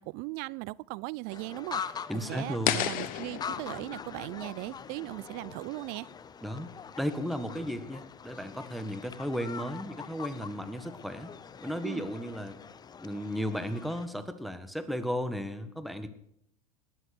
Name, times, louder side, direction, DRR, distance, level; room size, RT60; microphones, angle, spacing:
voice 1, 0.0-6.1 11.8-12.1, right 23 dB, 55° right, 0.5 m, -38 dB
sound 1, 1.3-14.1, left 6 dB, 20° left, 0.7 m, -43 dB
voice 2, 2.1-2.9 6.4-11.3 11.6-12.6 13.0-16.1, equal, ahead, 1.5 m, -35 dB
sound 2, 2.7-5.7, left 12 dB, 50° left, 1.2 m, -34 dB
19.5 x 7.7 x 7.8 m
hypercardioid pair, 100°, 18 cm